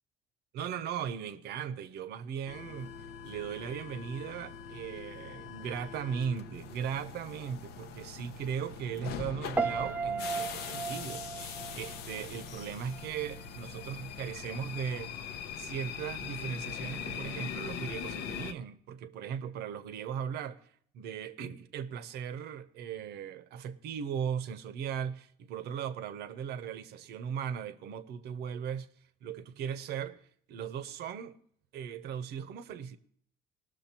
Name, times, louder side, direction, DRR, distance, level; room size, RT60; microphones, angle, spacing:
voice 1, 0.5-3.0 3.2-15.1 15.6-20.6 20.9-28.9 29.2-30.2 30.5-31.4 31.7-33.0, right 8 dB, 75° right, 0.8 m, -38 dB
sound 1, 2.5-18.5, left 7 dB, 80° left, 0.7 m, -42 dB
Piano, 9.6-12.7 12.9-13.4, right 4 dB, 10° right, 0.4 m, -35 dB
19.5 x 6.5 x 4.4 m
cardioid pair, 110°, 17 cm